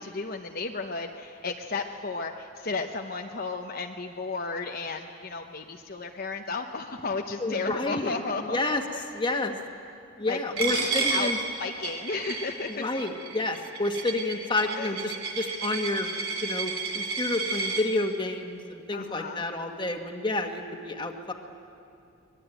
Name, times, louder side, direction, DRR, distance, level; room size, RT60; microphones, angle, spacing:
voice 1, 0.0-8.6 8.9-9.1 10.3-11.3 11.6-12.8 14.7-14.9 18.9-19.4, left 4 dB, 45° left, 2 dB, 0.9 m, -33 dB
voice 2, 7.4-8.8 9.1-9.5 10.2-11.4 12.7-16.1 16.4-21.3, left 2 dB, 25° left, 4 dB, 1.6 m, -30 dB
Coin (dropping), 10.6-17.8, right 4 dB, 85° right, 3.4 m, -32 dB
24.0 x 20.5 x 9.2 m, 2.6 s
head